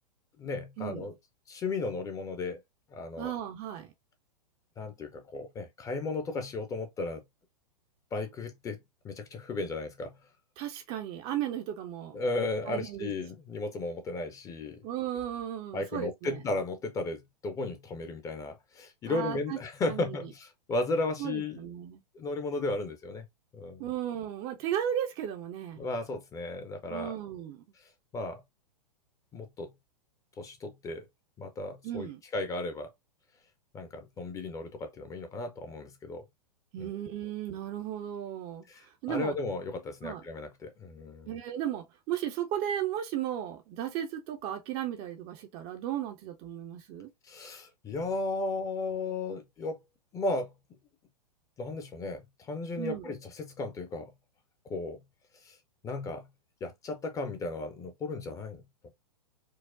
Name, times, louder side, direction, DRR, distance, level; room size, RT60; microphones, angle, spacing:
voice 1, 0.4-1.1 1.5-2.6 2.9-3.3 4.8-7.2 8.1-8.8 9.0-10.2 12.1-14.8 15.7-21.6 22.1-23.2 23.5-23.8 25.8-27.1 28.1-28.4 29.3-29.7 30.4-31.1 31.4-32.9 33.7-36.2 36.8-36.9 38.7-41.3 47.2-49.8 50.1-50.5 51.6-54.1 54.6-55.0 55.4-55.6 55.8-56.3 56.6-58.6, left 2 dB, 15° left, 0.6 m, -35 dB
voice 2, 3.2-3.9 10.6-12.2 12.7-13.1 14.8-16.4 19.0-19.6 19.9-20.2 21.2-22.0 23.8-25.8 26.9-27.6 31.8-32.2 36.7-39.3 40.0-40.2 41.3-47.1 52.8-53.1, right 10 dB, 25° right, 0.5 m, -35 dB
4.5 x 2.0 x 2.5 m
figure-of-eight pair, 105°, 21 cm